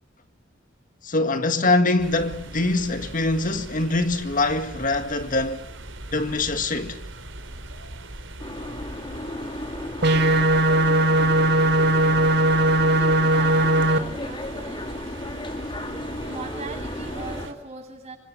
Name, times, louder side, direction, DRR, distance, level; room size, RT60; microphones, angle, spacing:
voice 1, 1.0-5.6 6.1-7.0, left 2 dB, 45° left, 1.8 m, -23 dB
sound 1, 2.0-17.5, right 1 dB, 85° right, 4.2 m, -40 dB
Boat Water vehicle, 8.4-17.5, left 1 dB, 25° left, 3.5 m, -34 dB
sound 2, 10.0-14.0, right 1 dB, 60° right, 1.7 m, -19 dB
voice 2, 12.9-14.9 15.9-18.2, right 3 dB, 35° right, 8.0 m, -39 dB
27.0 x 25.5 x 8.7 m
head